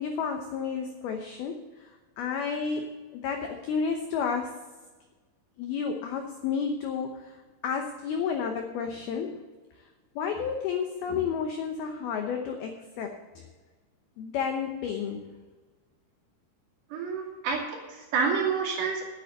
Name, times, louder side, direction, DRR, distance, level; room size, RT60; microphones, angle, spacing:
voice 1, 0.0-4.6 5.6-9.4 9.8-9.9 10.2-13.2 14.2-15.3, left 6 dB, 85° left, 4 dB, 2.2 m, -31 dB
voice 2, 16.9-19.1, right 5 dB, 60° right, -2 dB, 4.4 m, -29 dB
10.5 x 8.8 x 6.9 m, 1.3 s
omnidirectional pair, 5.7 m